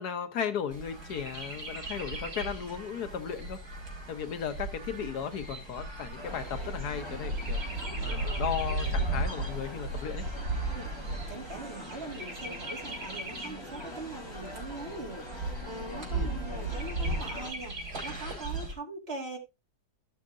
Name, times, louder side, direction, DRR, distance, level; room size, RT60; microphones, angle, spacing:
voice 1, 0.0-3.6 4.1-7.6 8.0-10.2 16.1-16.3, left 8 dB, 80° left, 1.5 m, -35 dB
Chirp tweet, 0.7-18.7, right 2 dB, 85° right, 3.5 m, -36 dB
sound 1, 6.2-17.5, left 2 dB, 20° left, 1.7 m, -44 dB
voice 2, 11.3-19.4, right 2 dB, 40° right, 2.2 m, -42 dB
13.5 x 6.5 x 2.5 m
omnidirectional pair, 1.7 m